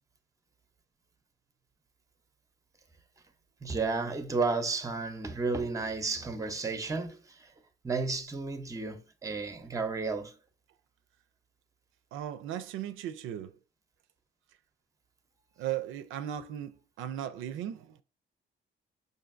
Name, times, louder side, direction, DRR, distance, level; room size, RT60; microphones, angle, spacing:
voice 1, 3.6-7.5 7.8-10.3, right 4 dB, 15° right, 0.6 m, -32 dB
voice 2, 12.1-13.6 15.6-18.0, right 11 dB, 85° right, 0.4 m, -37 dB
5.0 x 2.6 x 2.5 m
cardioid pair, 90°, 20 cm